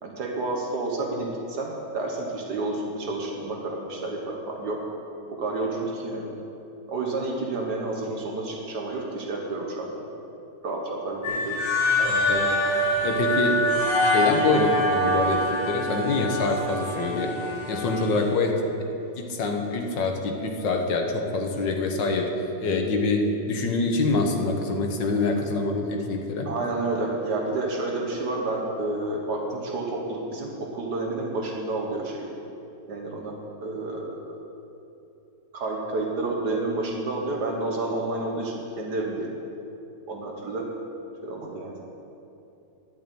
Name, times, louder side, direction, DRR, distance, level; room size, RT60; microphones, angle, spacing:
voice 1, 0.0-4.8 5.3-6.3 6.9-9.9 10.6-11.6 26.5-32.3 32.9-33.3 33.6-34.2 35.5-39.3 40.1-40.7 41.2-41.8, right 2 dB, 70° right, 0 dB, 1.8 m, -30 dB
sound 1, 11.2-18.3, equal, 35° left, 1.5 m, -25 dB
voice 2, 12.0-12.6 13.0-13.6 14.0-17.3 17.7-18.6 19.2-22.3 22.6-26.5, left 3 dB, 90° left, 3 dB, 1.8 m, -25 dB
11.0 x 5.8 x 9.0 m, 2.9 s
omnidirectional pair, 1.9 m